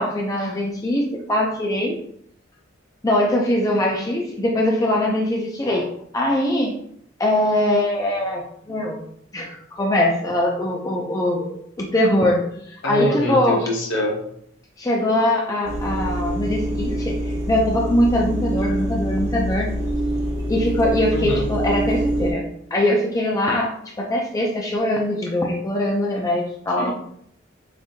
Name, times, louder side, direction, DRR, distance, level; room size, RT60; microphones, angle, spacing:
voice 1, 0.0-2.0 3.0-6.8 7.2-9.0 9.3-13.7 14.8-19.7 20.5-26.9, left 1 dB, 15° left, -1 dB, 0.4 m, -22 dB
voice 2, 12.8-14.2 21.1-21.4 26.8-26.9, left 1 dB, 60° left, 0 dB, 1.0 m, -25 dB
sound 1, 15.6-22.3, right 1 dB, 60° right, 1.2 m, -25 dB
4.9 x 2.6 x 2.7 m, 0.68 s
head